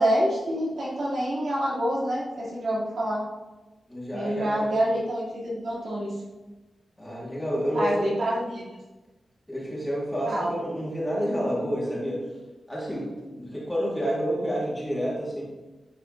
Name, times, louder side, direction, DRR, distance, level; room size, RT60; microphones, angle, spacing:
voice 1, 0.0-3.2 4.1-6.1 7.7-8.8 10.3-10.6, equal, 70° right, -7 dB, 2.7 m, -27 dB
voice 2, 3.9-4.7 7.0-8.1 9.5-12.2 12.7-13.1 13.3-15.4, equal, 5° left, -6 dB, 2.4 m, -29 dB
10.5 x 4.0 x 3.9 m, 1.1 s
wide cardioid pair, 150°, 0 cm